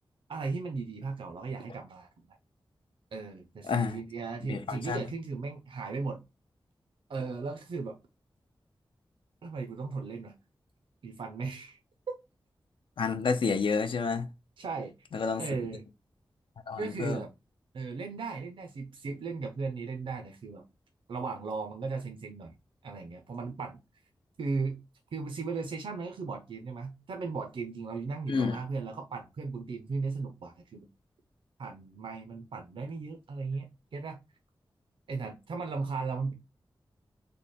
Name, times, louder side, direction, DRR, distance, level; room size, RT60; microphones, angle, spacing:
voice 1, 0.3-2.1 3.1-6.2 7.1-8.0 9.4-10.3 11.0-11.8 14.6-14.9 15.4-15.8 16.8-17.3 17.7-20.7 21.1-22.6 22.8-23.8 24.4-24.8 25.1-30.9 31.6-34.2 35.1-36.3, right 4 dB, 80° right, 0.5 m, -36 dB
voice 2, 3.6-4.0 4.5-5.0 13.0-14.3 15.1-15.4 16.7-17.2 28.3-28.6, left 5 dB, 80° left, 0.5 m, -29 dB
3.3 x 2.1 x 4.1 m
wide cardioid pair, 110°, 9 cm